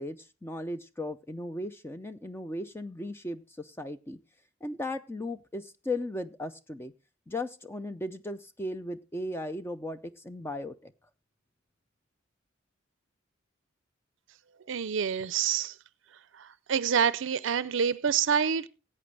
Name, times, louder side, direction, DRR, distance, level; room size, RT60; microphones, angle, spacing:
voice 1, 0.0-4.2 4.6-6.9 7.3-10.9, left 1 dB, 10° left, 0.4 m, -36 dB
voice 2, 14.7-15.7 16.7-18.7, right 7 dB, 70° right, 0.5 m, -27 dB
16.5 x 8.5 x 3.3 m
head